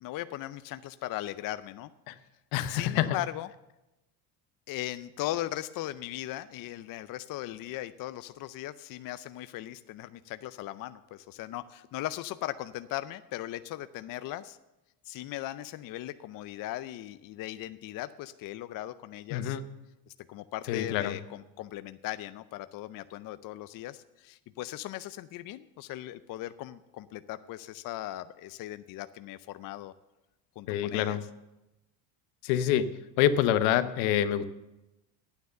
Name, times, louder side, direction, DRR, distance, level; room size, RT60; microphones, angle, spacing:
voice 1, 0.0-1.9 2.7-3.5 4.7-14.6 15.1-19.6 20.1-29.9 30.6-31.2, left 14 dB, 45° left, 13 dB, 0.5 m, -38 dB
voice 2, 2.5-3.2 19.3-19.6 20.7-21.2 30.7-31.2 32.4-32.9 33.2-34.4, left 11 dB, 75° left, 12 dB, 1.0 m, -26 dB
9.4 x 9.3 x 6.8 m, 0.97 s
supercardioid pair, 95°, 49 cm